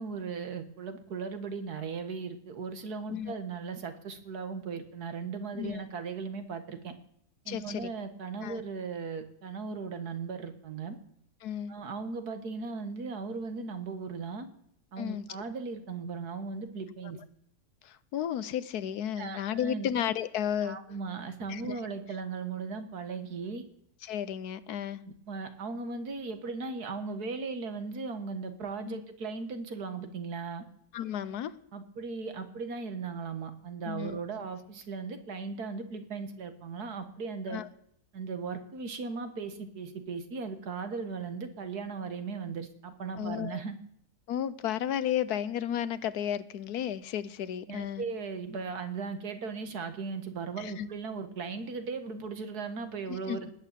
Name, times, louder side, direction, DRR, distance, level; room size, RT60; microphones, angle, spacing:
voice 1, 0.0-6.9 7.5-11.0 11.7-14.5 14.9-17.2 19.2-19.9 20.6-23.6 25.0-30.6 31.7-37.6 38.1-43.8 47.7-53.5, right 4 dB, 90° right, 8 dB, 2.1 m, -37 dB
voice 2, 7.5-7.9 8.4-8.6 11.4-11.8 15.0-15.3 17.8-20.8 21.5-21.7 24.0-25.0 28.9-29.0 30.9-31.6 33.8-34.2 37.5-37.7 43.2-43.6 44.3-48.0 50.6-50.9 53.1-53.5, left 10 dB, 85° left, 16 dB, 1.4 m, -33 dB
19.0 x 8.8 x 8.3 m, 0.70 s
omnidirectional pair, 1.6 m